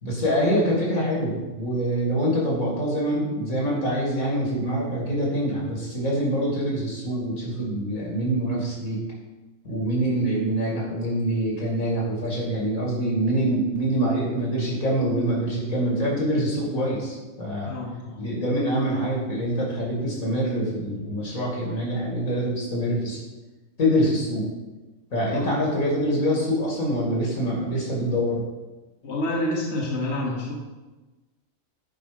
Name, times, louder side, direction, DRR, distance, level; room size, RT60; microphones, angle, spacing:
voice 1, 0.0-9.0 9.6-17.7 18.2-23.2 23.8-24.5 25.1-28.4, equal, 80° left, -3 dB, 3.0 m, -25 dB
voice 2, 17.6-18.2 25.3-25.5 29.0-30.5, left 1 dB, 55° left, -3 dB, 1.5 m, -28 dB
10.0 x 4.9 x 5.2 m, 1.2 s
omnidirectional pair, 1.4 m